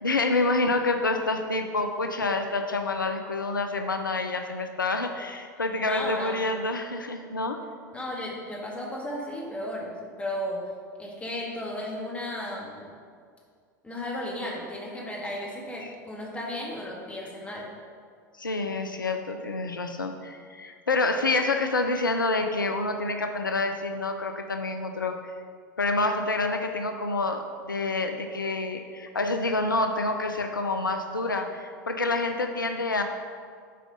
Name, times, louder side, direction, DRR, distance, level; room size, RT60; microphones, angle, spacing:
voice 1, 0.0-7.6 18.4-25.2 25.8-33.0, left 2 dB, 85° left, 6 dB, 0.5 m, -27 dB
voice 2, 5.8-6.4 7.9-10.7 11.0-12.8 13.8-17.7, left 1 dB, 10° left, -3 dB, 1.9 m, -34 dB
7.5 x 4.6 x 5.3 m, 2.1 s
figure-of-eight pair, 85°, 11 cm